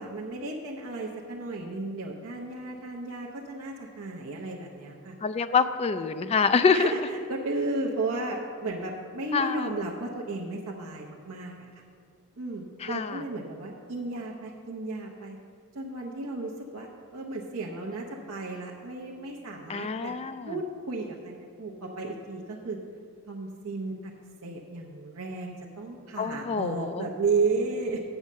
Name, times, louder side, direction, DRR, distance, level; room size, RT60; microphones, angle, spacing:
voice 1, 0.0-5.2 6.7-11.7 12.4-15.4 15.7-20.1 20.5-22.8 23.3-24.1 24.4-28.0, right 3 dB, 65° right, -2 dB, 0.8 m, -33 dB
voice 2, 5.2-6.9 9.3-9.7 12.8-13.2 19.7-20.5 26.2-27.1, left 5 dB, 25° left, 11 dB, 0.3 m, -26 dB
7.9 x 5.5 x 7.3 m, 2.3 s
head